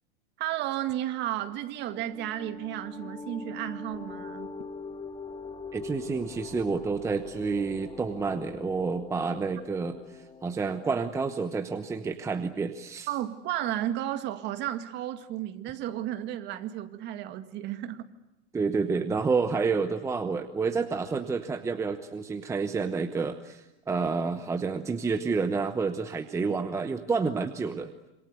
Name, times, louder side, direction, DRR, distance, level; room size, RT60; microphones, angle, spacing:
voice 1, 0.4-4.5 13.1-18.1 26.5-26.6, right 12 dB, 30° right, 2.0 m, -33 dB
sound 1, 1.5-11.7, left 4 dB, 15° left, 1.4 m, -43 dB
voice 2, 5.7-13.1 18.5-27.9, right 4 dB, 10° right, 1.0 m, -29 dB
27.0 x 27.0 x 8.2 m
supercardioid pair, 160°, 34 cm